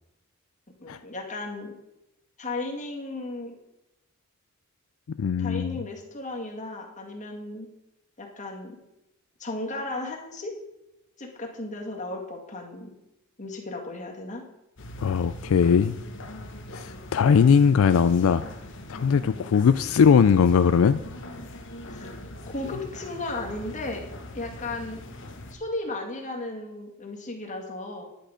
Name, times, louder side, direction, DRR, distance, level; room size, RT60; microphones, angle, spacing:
voice 1, 0.8-1.7 2.4-3.6 5.4-7.7 8.2-8.8 9.4-10.5 11.2-12.9 13.4-14.5 21.9-22.1 22.5-24.0 24.3-25.0 25.5-28.0, left 2 dB, 35° left, 1 dB, 1.9 m, -35 dB
voice 2, 5.2-5.8 15.0-15.9 16.7-18.4 18.9-21.0, left 6 dB, 75° left, 12 dB, 0.4 m, -20 dB
sound 1, 14.8-25.5, left 1 dB, 60° left, 1.1 m, -41 dB
10.0 x 8.5 x 5.0 m, 0.91 s
head